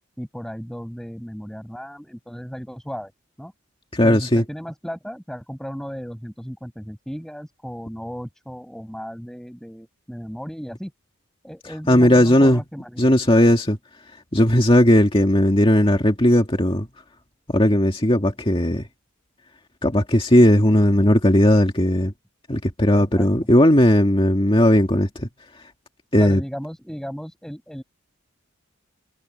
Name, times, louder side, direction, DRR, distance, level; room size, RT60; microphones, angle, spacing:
voice 1, 0.2-3.1 3.4-3.5 4.0-10.9 11.4-13.1 22.9-23.3 26.2-27.8, equal, ahead, 6.2 m, -35 dB
voice 2, 3.9-4.4 11.9-12.6 13.0-13.8 14.3-16.9 17.5-18.8 19.8-22.1 22.5-25.3 26.1-26.4, left 1 dB, 25° left, 2.1 m, -16 dB
head